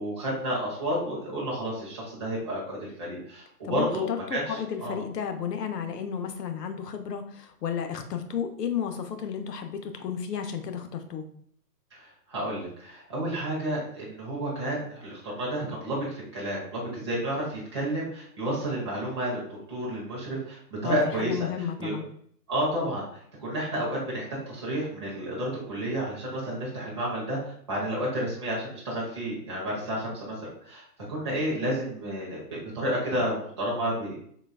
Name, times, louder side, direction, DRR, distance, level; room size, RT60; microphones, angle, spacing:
voice 1, 0.0-5.0 11.9-19.4 19.7-21.5 21.8-22.0 22.5-30.8 31.1-34.2, right 1 dB, 20° right, -7 dB, 0.6 m, -31 dB
voice 2, 3.6-4.2 4.5-11.2 20.8-22.0, left 8 dB, 80° left, 7 dB, 0.7 m, -33 dB
3.9 x 2.3 x 2.3 m, 0.62 s
hypercardioid pair, 160°, 48 cm